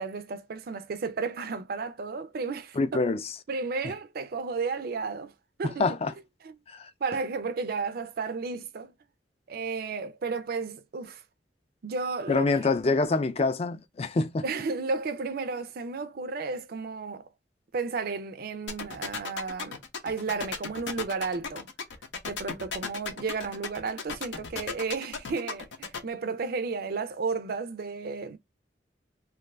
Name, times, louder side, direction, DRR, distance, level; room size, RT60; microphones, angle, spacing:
voice 1, 0.0-3.0 3.5-5.3 5.6-6.0 6.4-6.5 7.0-8.9 9.5-11.2 11.8-12.5 14.4-17.3 17.7-19.8 20.0-21.7 22.2-28.4, right 4 dB, 55° right, 0.4 m, -33 dB
voice 2, 2.8-3.2 5.6-6.1 6.7-6.9 12.3-14.4, left 3 dB, 35° left, 0.4 m, -26 dB
sound 1, 18.7-26.0, left 5 dB, 80° left, 0.7 m, -35 dB
2.6 x 2.4 x 3.1 m
head